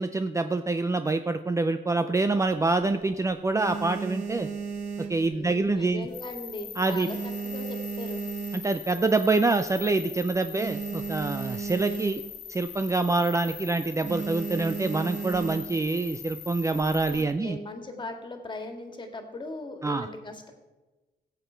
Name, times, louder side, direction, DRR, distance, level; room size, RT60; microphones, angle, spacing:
voice 1, 0.0-4.5 5.1-6.1 6.8-7.1 8.5-12.2 12.5-17.6 19.8-20.1, right 3 dB, 15° right, 8 dB, 0.5 m, -26 dB
sound 1, 2.2-3.0 3.4-5.8 6.1-6.5 6.8-9.0 9.5-9.6 9.8-9.9 10.2-12.4 12.7-13.0 13.3-13.6 14.0-15.9 16.6-17.2, right 5 dB, 40° right, 2.0 m, -35 dB
voice 2, 5.3-8.2 17.1-20.5, left 2 dB, 25° left, 5 dB, 2.0 m, -39 dB
sound 2, 6.1-17.2, left 9 dB, 80° left, 1.4 m, -43 dB
16.0 x 8.1 x 4.5 m, 1.2 s
cardioid pair, 95°, 18 cm